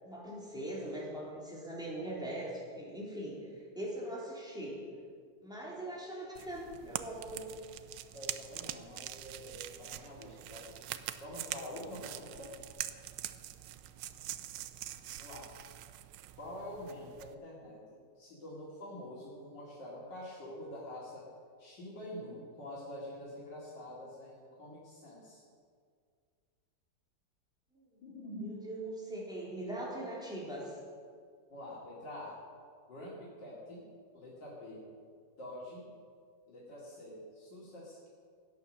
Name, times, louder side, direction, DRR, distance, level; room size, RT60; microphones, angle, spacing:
voice 1, 0.0-3.4 3.8-4.8 5.4-7.5 14.0-14.1 27.7-27.8 28.4-30.8, right 1 dB, ahead, -5 dB, 3.6 m, -41 dB
voice 2, 5.7-6.0 8.1-12.5 15.2-15.5 16.3-21.3 21.6-25.4 28.0-28.5 29.6-29.7 31.5-32.4 32.9-33.9 34.1-34.8 35.4-35.9 36.5-38.1, left 1 dB, 75° left, -7 dB, 3.2 m, -46 dB
sound 1, 6.3-17.3, right 12 dB, 85° right, 1.3 m, -44 dB
17.0 x 9.5 x 6.4 m, 2.1 s
omnidirectional pair, 2.0 m